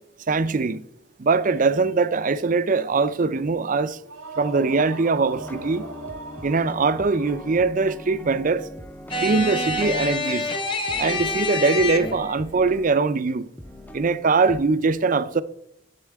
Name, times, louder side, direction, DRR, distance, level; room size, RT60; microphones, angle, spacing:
voice 1, 0.3-0.8 1.2-4.0 4.4-5.8 6.4-8.7 9.2-10.5 11.0-13.5 13.9-15.4, right 4 dB, 40° right, 0.5 m, -22 dB
sound 1, 4.0-8.0, right 4 dB, 85° right, 1.0 m, -39 dB
sound 2, 5.3-10.3 10.9-13.0 13.3-13.4 13.6-14.2 14.5-14.6, left 1 dB, 10° left, 0.5 m, -40 dB
sound 3, 9.1-12.4, left 2 dB, 25° left, 1.0 m, -27 dB
11.0 x 8.1 x 3.5 m
head